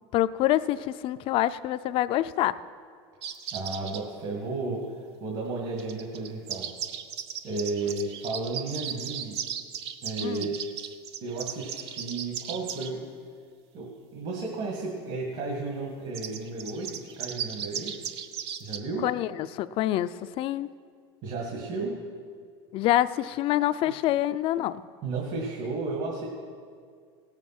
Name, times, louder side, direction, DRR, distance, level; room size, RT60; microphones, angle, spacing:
voice 1, 0.1-2.6 10.2-10.5 19.0-20.7 22.7-24.8, left 13 dB, 40° left, 14 dB, 0.4 m, -26 dB
sound 1, 3.2-4.0 5.8-12.9 16.1-18.8, right 9 dB, 85° right, 0.8 m, -36 dB
voice 2, 3.5-4.8 5.2-6.7 7.4-9.4 10.0-10.6 11.2-13.1 13.7-13.9 14.1-18.1 18.6-19.0 21.2-21.9 23.9-24.0 25.0-26.3, right 3 dB, 50° right, -2 dB, 2.2 m, -33 dB
17.5 x 7.3 x 6.0 m, 2.1 s
supercardioid pair, 135°, 14 cm